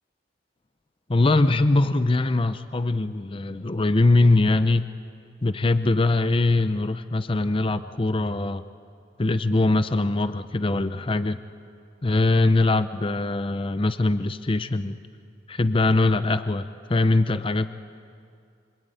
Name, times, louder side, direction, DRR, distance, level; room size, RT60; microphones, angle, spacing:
voice 1, 1.1-4.9 5.4-8.6 9.2-11.4 12.0-15.0 15.5-17.7, left 2 dB, 30° left, 12 dB, 0.6 m, -22 dB
26.0 x 25.0 x 9.2 m, 2.4 s
head